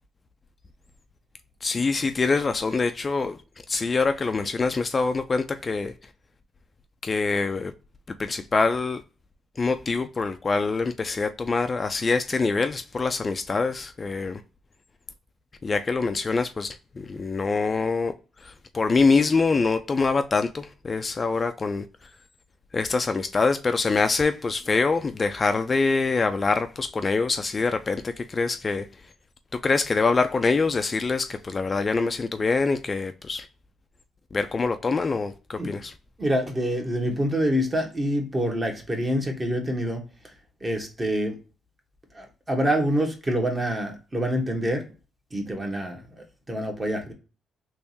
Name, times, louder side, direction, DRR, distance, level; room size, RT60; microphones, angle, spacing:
voice 1, 1.6-3.4 3.7-5.9 7.0-7.7 8.2-9.0 9.6-14.4 15.6-18.1 18.4-21.9 22.7-28.9 29.6-33.5 34.3-35.9, left 4 dB, 30° left, 0.3 m, -24 dB
voice 2, 36.2-40.3 40.6-41.4 42.1-44.8 45.3-47.1, equal, 25° right, 1.2 m, -26 dB
3.5 x 3.0 x 2.7 m
cardioid pair, 90°, 0 cm